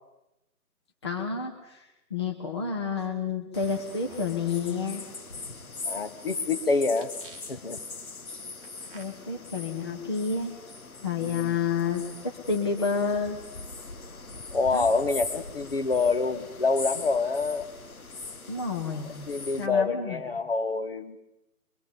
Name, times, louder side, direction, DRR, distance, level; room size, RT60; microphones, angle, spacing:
voice 1, 1.0-5.0 8.9-10.5 11.0-12.0 12.5-13.4 14.7-14.9 18.5-19.1 19.6-20.2, left 5 dB, 15° left, 2 dB, 1.0 m, -29 dB
sound 1, 3.5-19.7, left 3 dB, 60° left, 1.7 m, -41 dB
sound 2, 4.0-6.4 6.9-7.8 8.6-9.0, right 4 dB, 5° right, 1.6 m, -51 dB
voice 2, 5.9-7.1 7.5-7.8 11.2-11.6 14.5-17.7 19.3-21.2, left 4 dB, 40° left, 10 dB, 1.3 m, -26 dB
23.5 x 23.5 x 5.1 m, 0.92 s
figure-of-eight pair, 150°, 47 cm